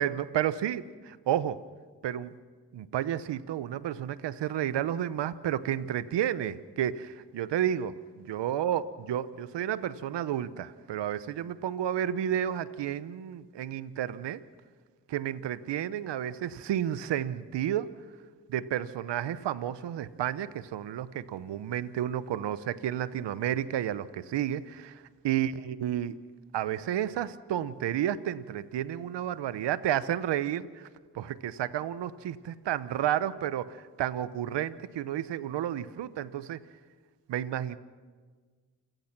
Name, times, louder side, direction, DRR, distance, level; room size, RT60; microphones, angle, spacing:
voice 1, 0.0-1.6 2.0-2.3 2.7-14.4 15.1-17.9 18.5-26.2 26.5-30.9 31.1-36.6 37.3-37.8, right 11 dB, 80° right, 15 dB, 1.0 m, -31 dB
28.5 x 18.0 x 6.0 m, 1.5 s
supercardioid pair, 50°, 42 cm